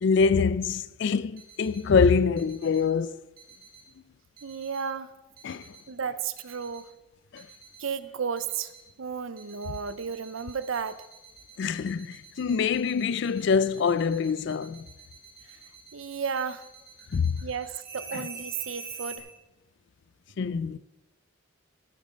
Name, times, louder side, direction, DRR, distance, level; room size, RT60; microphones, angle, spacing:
voice 1, 0.0-3.2 5.4-5.7 7.3-7.5 11.6-14.9 17.1-17.4 18.1-18.2 20.4-20.8, left 5 dB, 60° left, 0.4 m, -25 dB
sound 1, 1.4-1.8 2.4-2.8 3.4-3.8 4.4-4.8 5.4-5.8 6.4-6.8 7.4-7.8 8.4-8.8 9.4-19.2, right 5 dB, 45° right, 1.9 m, -46 dB
voice 2, 4.4-5.1 5.9-6.9 7.8-8.7 9.0-11.0 15.4-15.6 15.9-16.7 17.4-19.3, right 6 dB, 75° right, 0.6 m, -33 dB
14.5 x 6.7 x 5.1 m
head